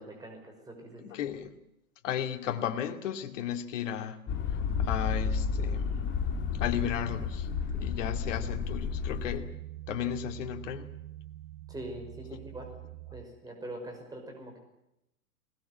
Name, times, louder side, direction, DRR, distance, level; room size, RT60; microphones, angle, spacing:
voice 1, 0.0-1.1 11.7-12.7 13.1-14.6, right 1 dB, 10° right, 2 dB, 5.8 m, -43 dB
voice 2, 1.0-1.5 2.0-4.2 4.8-6.1 6.6-7.5 7.7-9.5 9.9-10.9, left 9 dB, 55° left, 6 dB, 2.5 m, -34 dB
sound 1, 4.3-9.4, left 6 dB, 25° left, 2.2 m, -31 dB
sound 2, 6.6-13.3, right 16 dB, 60° right, 1.2 m, -44 dB
21.0 x 19.5 x 9.7 m, 0.86 s
hypercardioid pair, 115°, 45 cm